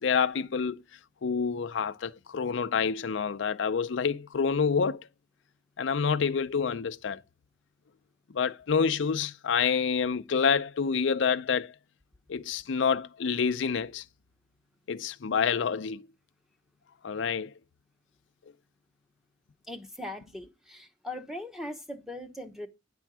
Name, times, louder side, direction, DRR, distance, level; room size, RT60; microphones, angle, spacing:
voice 1, 0.0-0.8 1.2-5.1 5.8-7.2 8.3-11.7 12.3-14.0 14.9-16.1 17.0-17.5, left 6 dB, 70° left, 0.5 m, -27 dB
voice 2, 19.7-22.7, left 1 dB, ahead, 1.0 m, -40 dB
10.0 x 4.5 x 6.1 m
head